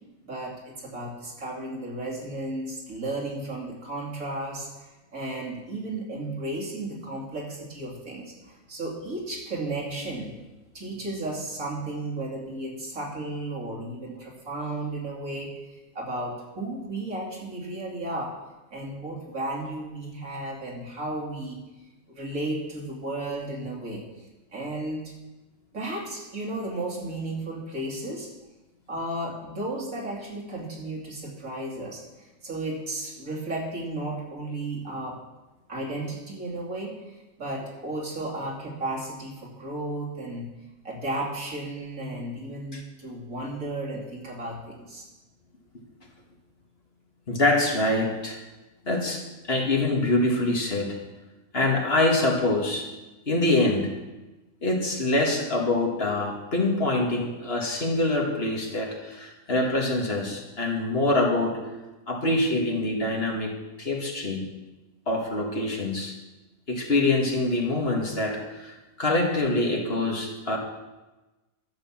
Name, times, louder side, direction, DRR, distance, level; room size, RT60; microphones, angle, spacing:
voice 1, 0.2-10.3 10.7-18.4 18.7-21.6 22.1-25.1 25.7-28.3 28.9-35.2 35.7-40.5 40.8-45.1, right 2 dB, 75° right, -3 dB, 3.2 m, -34 dB
voice 2, 47.3-48.4 48.9-51.0 51.5-52.9 53.3-53.9 54.6-61.6 62.1-64.4 65.1-66.1 66.7-70.6, left 2 dB, 45° left, 0 dB, 2.1 m, -25 dB
12.0 x 7.7 x 7.3 m, 1.1 s
omnidirectional pair, 1.4 m